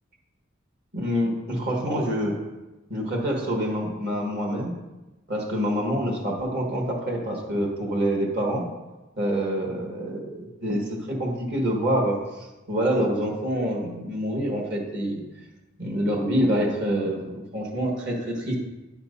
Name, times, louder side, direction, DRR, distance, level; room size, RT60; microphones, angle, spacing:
voice 1, 0.9-2.4 2.9-4.7 5.3-8.7 9.2-15.2 15.8-18.6, equal, 55° right, -1 dB, 1.5 m, -26 dB
9.8 x 7.1 x 2.7 m, 1.1 s
head